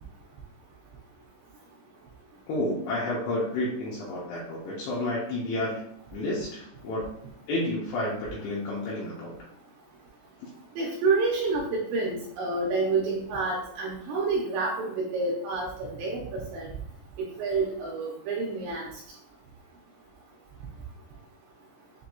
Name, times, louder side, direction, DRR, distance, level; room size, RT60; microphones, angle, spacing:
voice 1, 2.5-5.8 6.1-7.1 7.5-9.3, left 1 dB, 75° left, -6 dB, 2.5 m, -30 dB
voice 2, 10.8-16.7 17.2-18.9, right 3 dB, 80° right, -3 dB, 2.6 m, -28 dB
7.6 x 2.6 x 2.2 m, 0.72 s
omnidirectional pair, 5.7 m